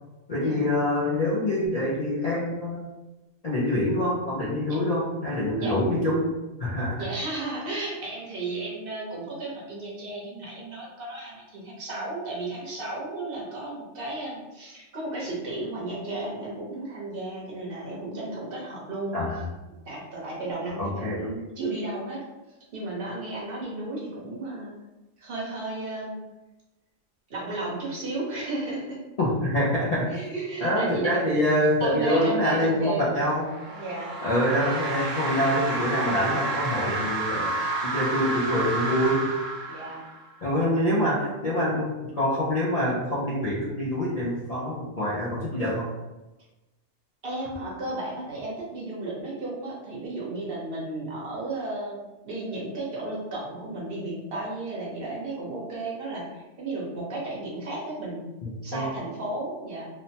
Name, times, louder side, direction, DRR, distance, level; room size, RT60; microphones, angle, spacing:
voice 1, 0.3-2.9 3.4-7.1 19.1-19.5 20.8-21.3 29.2-30.1 30.6-33.4 34.2-39.3 40.4-45.9 58.4-58.9, left 1 dB, 75° left, -7 dB, 0.3 m, -25 dB
voice 2, 7.0-19.2 19.8-22.2 22.7-24.7 25.2-26.2 27.3-29.0 30.1-31.1 31.8-33.2 33.7-34.2 39.7-40.0 47.2-52.0 52.2-58.3 58.6-59.9, right 2 dB, 50° right, -5 dB, 1.0 m, -34 dB
sound 1, 33.3-40.3, right 2 dB, 70° right, 1.0 m, -30 dB
3.1 x 2.1 x 2.7 m, 1.1 s
omnidirectional pair, 1.4 m